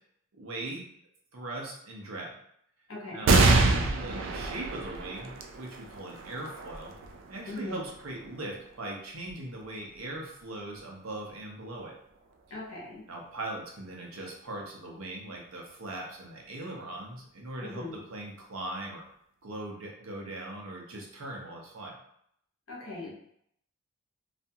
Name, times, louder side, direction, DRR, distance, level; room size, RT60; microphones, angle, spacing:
voice 1, 0.3-0.8 1.3-2.3 3.1-6.9 7.3-12.0 13.1-19.0 19.4-21.9, right 1 dB, 75° right, -1 dB, 0.7 m, -40 dB
voice 2, 2.9-3.3 7.4-7.8 12.5-13.1 17.6-18.0 22.7-23.1, left 2 dB, 70° left, -4 dB, 0.9 m, -40 dB
sound 1, 3.2-10.1 10.7-10.8 12.0-12.5, right 3 dB, 60° right, 0.3 m, -28 dB
2.5 x 2.3 x 2.7 m, 0.71 s
head